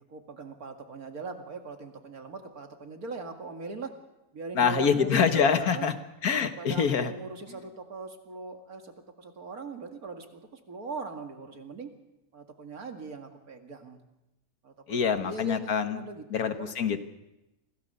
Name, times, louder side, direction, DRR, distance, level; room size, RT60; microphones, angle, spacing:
voice 1, 0.1-3.9 4.3-5.9 6.6-11.9 12.3-14.0 14.6-16.7, right 3 dB, 80° right, 5 dB, 2.6 m, -40 dB
voice 2, 4.5-5.9 6.2-7.1 7.5-7.6 14.9-16.0 16.3-17.0, left 6 dB, 85° left, 9 dB, 1.8 m, -25 dB
26.0 x 17.0 x 6.8 m, 0.96 s
omnidirectional pair, 1.6 m